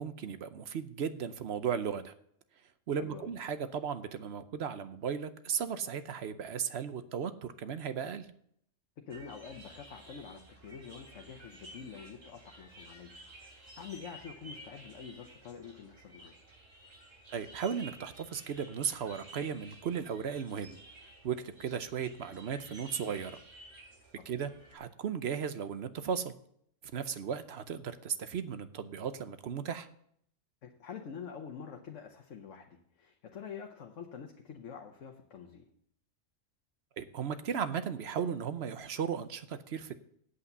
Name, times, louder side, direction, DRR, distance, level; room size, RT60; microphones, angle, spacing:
voice 1, 0.0-2.1 2.9-8.3 17.3-20.8 21.2-23.4 24.3-26.3 26.9-29.9 37.0-40.0, right 7 dB, 60° right, 11 dB, 0.9 m, -36 dB
voice 2, 9.1-16.4 24.2-24.3 30.6-35.7, left 6 dB, 80° left, 3 dB, 1.3 m, -47 dB
sound 1, 9.1-24.8, right 1 dB, 85° right, 3.8 m, -53 dB
8.4 x 8.2 x 6.7 m, 0.68 s
omnidirectional pair, 1.3 m